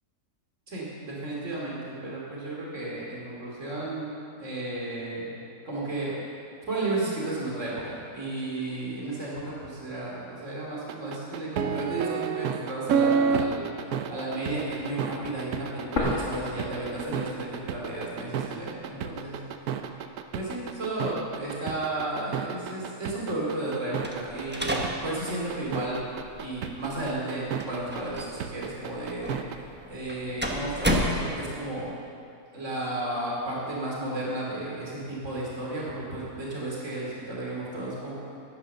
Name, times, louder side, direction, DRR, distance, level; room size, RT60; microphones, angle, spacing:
voice 1, 0.7-4.1 4.4-5.3 5.6-6.1 6.7-13.7 14.1-19.4 20.3-26.0 26.4-29.3 29.9-31.9 32.5-38.1, right 2 dB, 50° right, -5 dB, 3.4 m, -33 dB
sound 1, 10.9-29.6, right 7 dB, 75° right, 1.2 m, -30 dB
sound 2, 16.0-17.9 18.2-18.3 19.0-20.0, left 2 dB, 50° left, 1.9 m, -33 dB
sound 3, 24.0-31.8, equal, 10° right, 0.9 m, -33 dB
11.0 x 10.5 x 6.8 m, 2.6 s
omnidirectional pair, 1.6 m